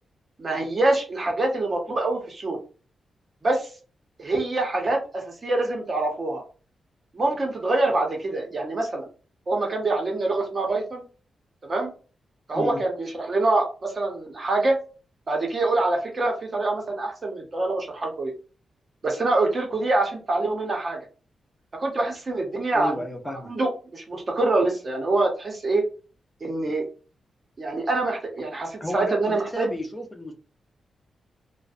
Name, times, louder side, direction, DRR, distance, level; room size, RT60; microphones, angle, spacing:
voice 1, 0.4-2.6 3.4-3.7 4.2-6.4 7.1-9.1 9.5-11.0 11.6-11.9 12.5-14.8 15.3-18.3 19.0-21.0 21.8-23.0 23.4-25.9 26.4-26.9 27.6-29.7, right 2 dB, 30° right, 1 dB, 0.7 m, -25 dB
voice 2, 22.7-23.5 28.8-30.3, left 1 dB, 10° left, 3 dB, 0.5 m, -32 dB
2.5 x 2.0 x 2.5 m, 0.36 s
wide cardioid pair, 165°, 0 cm